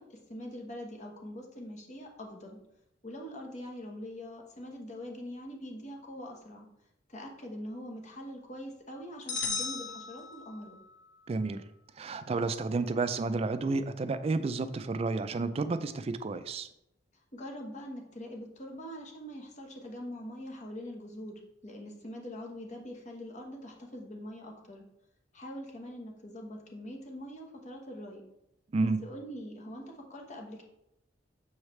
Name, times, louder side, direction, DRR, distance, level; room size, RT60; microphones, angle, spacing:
voice 1, 0.0-2.6 3.0-6.7 7.1-10.8 17.3-24.8 25.3-28.2 28.8-30.6, equal, 45° left, 1 dB, 1.1 m, -43 dB
sound 1, 9.3-10.8, left 4 dB, 85° left, 0.9 m, -36 dB
voice 2, 11.3-11.6 12.0-16.7 28.7-29.0, right 3 dB, 35° right, 11 dB, 0.3 m, -31 dB
7.1 x 4.8 x 3.2 m, 0.82 s
head